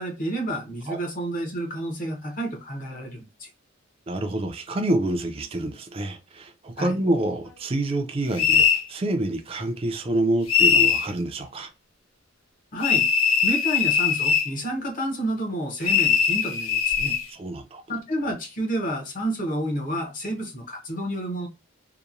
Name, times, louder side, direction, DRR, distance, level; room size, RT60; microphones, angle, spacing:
voice 1, 0.0-3.5 6.8-7.0 12.7-13.1 13.4-17.2 17.9-21.5, right 1 dB, 40° left, 0.8 m, -30 dB
voice 2, 4.1-11.7 17.3-17.8, right 1 dB, 30° right, 0.4 m, -27 dB
sound 1, 8.4-8.8 10.5-11.1 12.8-14.5 15.8-17.2, left 7 dB, 75° left, 0.5 m, -20 dB
2.8 x 2.1 x 2.4 m
head